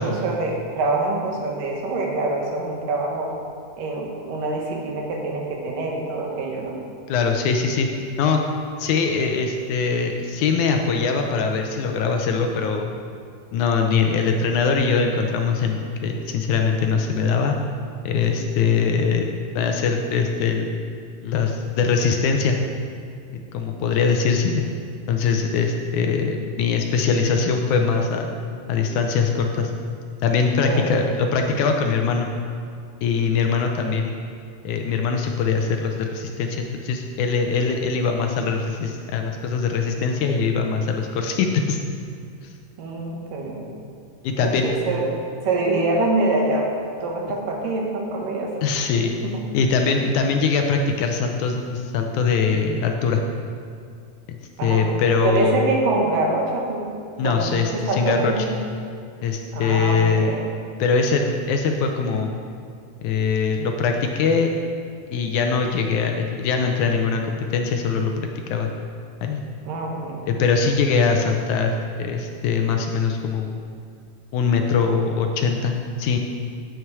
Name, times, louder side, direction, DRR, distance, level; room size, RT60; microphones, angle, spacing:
voice 1, 0.0-3.3 3.8-6.8 30.6-31.0 42.8-43.6 44.4-45.1 45.4-46.7 47.0-48.5 49.0-49.4 54.6-55.0 55.2-56.8 57.2-58.6 59.5-60.5 69.7-70.3, right 2 dB, 70° right, 0 dB, 2.9 m, -25 dB
voice 2, 7.1-8.4 8.8-12.9 13.5-17.6 18.0-19.3 19.5-20.8 21.2-22.6 23.3-24.7 25.1-28.3 28.7-29.7 30.2-32.3 33.0-34.2 34.6-41.8 42.4-42.5 44.2-44.7 48.6-49.1 49.5-53.2 54.3-55.5 57.2-58.3 59.2-60.3 60.8-62.3 63.0-64.5 65.1-68.7 69.2-69.4 70.3-73.5 74.3-76.2, left 5 dB, 80° left, 4 dB, 1.8 m, -22 dB
9.6 x 9.0 x 4.7 m, 2.4 s
omnidirectional pair, 4.1 m